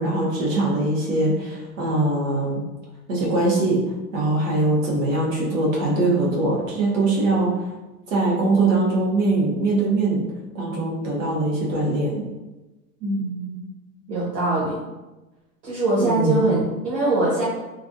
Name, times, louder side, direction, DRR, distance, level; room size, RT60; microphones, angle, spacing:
voice 1, 0.0-2.6 3.1-3.8 4.1-7.5 8.1-10.2 10.5-12.1 16.0-16.4, right 2 dB, 50° right, -4 dB, 1.1 m, -22 dB
voice 2, 13.0-13.6 14.1-14.8 15.6-17.5, right 2 dB, 75° right, -8 dB, 1.3 m, -23 dB
3.0 x 2.4 x 2.6 m, 1.1 s
hypercardioid pair, 170°, 50 cm